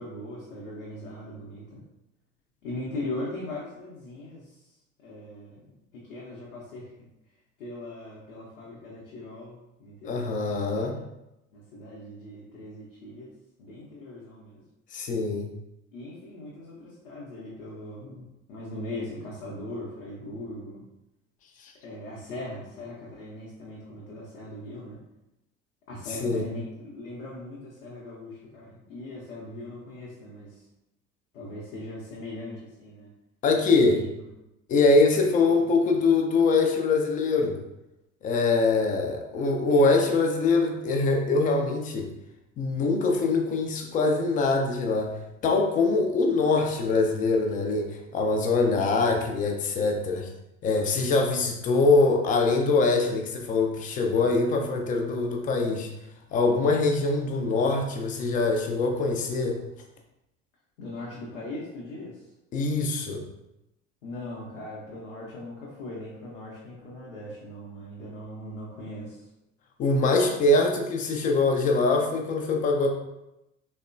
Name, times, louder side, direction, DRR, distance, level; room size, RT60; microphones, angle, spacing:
voice 1, 0.0-1.8 2.6-4.6 5.0-7.1 7.6-11.0 11.5-13.3 13.6-14.6 15.9-20.9 21.8-25.0 25.9-30.6 31.3-33.1 33.7-34.3 35.2-35.7 48.5-49.1 60.8-62.3 64.0-69.2, left 1 dB, 70° left, -5 dB, 0.8 m, -40 dB
voice 2, 10.0-11.0 14.9-15.5 21.6-21.7 26.2-26.4 33.4-34.0 34.7-37.6 38.2-42.1 42.6-45.1 45.4-50.3 50.6-55.9 56.3-59.6 62.5-63.3 69.8-72.9, left 3 dB, 20° left, 2 dB, 0.4 m, -23 dB
3.5 x 2.1 x 2.4 m, 0.91 s
figure-of-eight pair, 65°, 40 cm